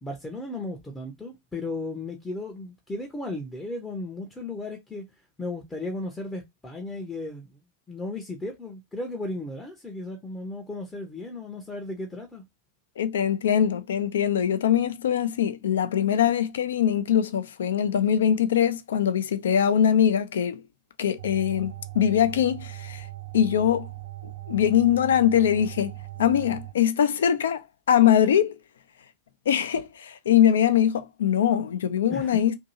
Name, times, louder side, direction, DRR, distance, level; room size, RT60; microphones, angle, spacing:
voice 1, 0.0-5.1 5.4-7.6 7.9-12.4 32.1-32.4, left 2 dB, 10° left, 0.6 m, -35 dB
voice 2, 13.0-20.6 21.0-23.1 23.3-23.9 24.2-25.9 26.2-28.6 29.5-32.5, left 9 dB, 65° left, 0.3 m, -22 dB
sound 1, 21.2-26.7, right 18 dB, 55° right, 0.3 m, -39 dB
2.6 x 2.5 x 2.7 m
figure-of-eight pair, 90°, 0 cm